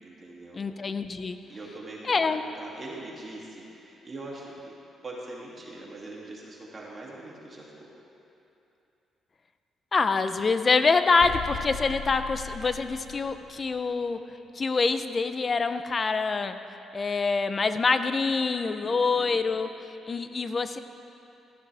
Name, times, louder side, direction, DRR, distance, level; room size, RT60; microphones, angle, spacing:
voice 1, 0.0-0.6 1.5-4.7 5.0-7.9 18.8-19.4, right 2 dB, 30° right, -4 dB, 2.8 m, -42 dB
voice 2, 0.5-1.4 2.0-2.4 9.9-14.2 14.5-16.6 16.9-20.8, left 4 dB, 35° left, 10 dB, 0.7 m, -25 dB
sound 1, 11.2-13.9, left 9 dB, 80° left, 0.5 m, -39 dB
17.0 x 14.0 x 3.5 m, 2.8 s
cardioid pair, 90°, 0 cm